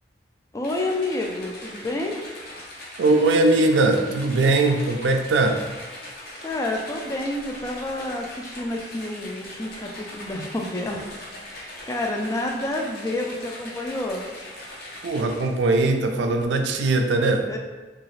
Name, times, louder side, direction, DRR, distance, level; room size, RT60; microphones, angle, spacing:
voice 1, 0.5-2.2 6.4-11.0 11.5-14.2 17.5-17.6, left 1 dB, 20° left, 1 dB, 0.3 m, -29 dB
sound 1, 0.6-15.7, left 1 dB, 60° left, 0.6 m, -40 dB
voice 2, 3.0-5.6 15.0-17.5, right 2 dB, 90° right, 4 dB, 0.4 m, -20 dB
2.8 x 2.3 x 3.1 m, 1.3 s
head